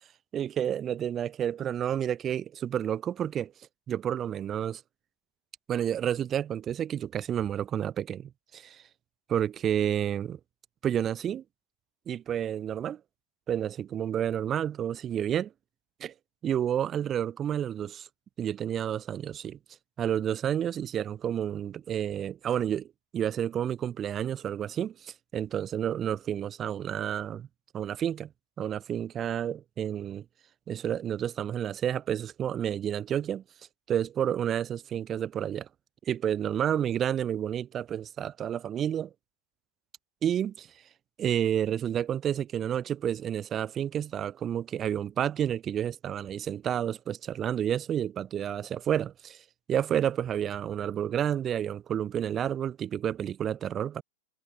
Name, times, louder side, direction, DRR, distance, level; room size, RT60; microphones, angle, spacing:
voice 1, 0.3-3.5 3.9-4.8 5.7-8.8 9.3-10.4 10.8-11.4 12.1-13.0 13.5-15.5 16.0-16.1 16.4-18.1 18.4-19.6 20.0-22.9 23.1-27.5 27.7-28.3 28.6-30.2 30.7-33.4 33.9-35.7 36.1-39.1 40.2-40.7 41.2-49.4 49.7-54.0, right 9 dB, 25° right, 1.0 m, -30 dB
figure-of-eight pair, 90°, 0 cm